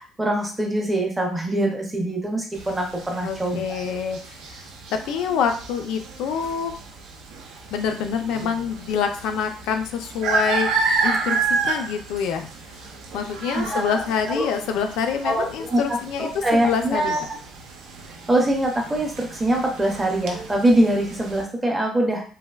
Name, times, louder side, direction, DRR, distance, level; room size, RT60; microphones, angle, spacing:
voice 1, 0.0-3.8 13.5-14.0 14.3-14.5 15.2-17.4 18.3-22.3, right 1 dB, 10° right, 1 dB, 0.5 m, -23 dB
sound 1, 2.5-21.4, right 4 dB, 85° right, 0.6 m, -31 dB
voice 2, 3.2-6.7 7.7-12.5 13.1-17.2, left 7 dB, 80° left, 6 dB, 0.4 m, -26 dB
3.3 x 2.5 x 2.3 m, 0.41 s
cardioid pair, 180°, 0 cm